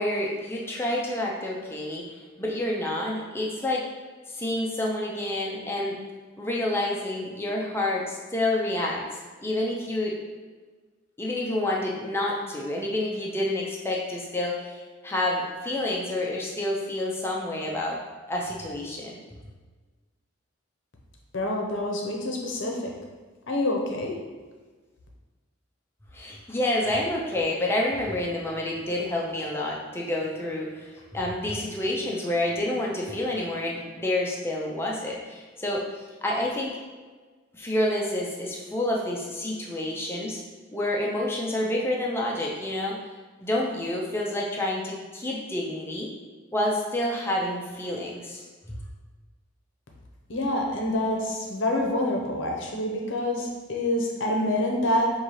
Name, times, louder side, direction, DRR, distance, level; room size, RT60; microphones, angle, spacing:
voice 1, 0.0-3.9 4.3-6.0 6.4-9.1 9.4-10.2 11.2-18.0 18.3-19.2 26.1-35.8 36.2-36.8 37.5-40.4 40.7-43.0 43.4-46.1 46.5-48.5, left 1 dB, 10° left, -3 dB, 0.5 m, -28 dB
voice 2, 21.3-22.9 23.5-24.1 50.3-55.1, left 1 dB, 65° left, 0 dB, 0.7 m, -27 dB
5.3 x 2.7 x 3.0 m, 1.4 s
head